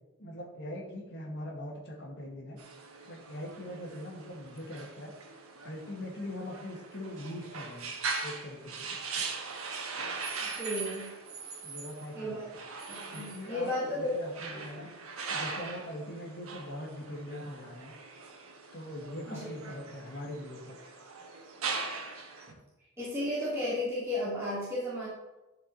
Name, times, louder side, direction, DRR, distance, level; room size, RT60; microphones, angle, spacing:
voice 1, 0.2-2.6 3.1-5.1 5.6-7.9 8.2-9.0 11.6-12.4 13.1-14.9 15.3-17.9 18.7-20.8 22.5-22.6, left 1 dB, 55° left, -2 dB, 1.9 m, -42 dB
sound 1, 2.6-22.5, right 4 dB, 80° right, 1.4 m, -41 dB
voice 2, 10.4-11.1 12.1-12.5 12.9-14.1 14.5-14.6 19.3-19.4 23.0-25.1, left 1 dB, 15° right, -10 dB, 3.1 m, -34 dB
12.0 x 5.2 x 4.3 m, 1.0 s
head